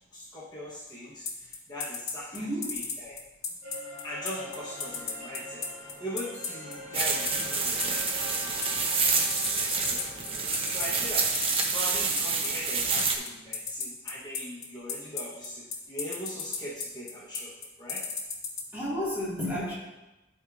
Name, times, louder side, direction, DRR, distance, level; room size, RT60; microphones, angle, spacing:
voice 1, 0.1-3.1 4.0-5.6 6.0-8.8 9.6-10.3 10.7-11.4 11.7-17.5 17.8-18.0, left 1 dB, 20° left, -8 dB, 1.1 m, -40 dB
sound 1, 1.3-18.6, left 6 dB, 55° left, 1.0 m, -33 dB
voice 2, 2.3-2.8 18.7-19.7, equal, 10° right, -8 dB, 2.0 m, -31 dB
sound 2, 3.6-11.3, equal, 45° right, 1.2 m, -43 dB
sound 3, 6.9-13.2, right 4 dB, 30° right, 0.6 m, -28 dB
11.5 x 4.7 x 2.6 m, 1.0 s
head